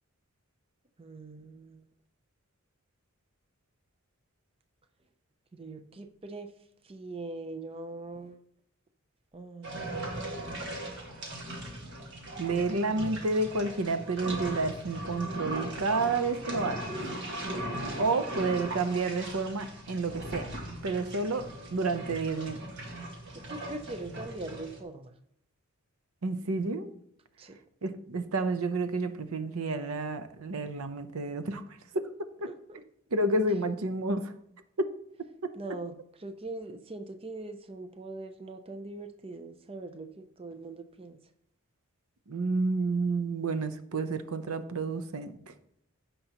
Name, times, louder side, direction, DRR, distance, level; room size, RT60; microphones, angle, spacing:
voice 1, 1.0-1.8 5.5-6.5 6.8-8.4 9.3-10.2 23.3-25.1 27.4-27.6 32.7-32.8 35.6-41.2, right 2 dB, 25° right, 8 dB, 0.5 m, -42 dB
sound 1, 9.6-24.8, right 1 dB, 55° right, 1.8 m, -39 dB
voice 2, 12.4-16.8 18.0-20.5 20.8-22.8 26.2-26.9 27.8-32.1 32.4-32.5 33.1-34.3 34.8-34.9 35.4-35.5 42.3-45.3, right 3 dB, 85° right, 10 dB, 0.7 m, -30 dB
15.5 x 5.5 x 2.9 m, 0.70 s
head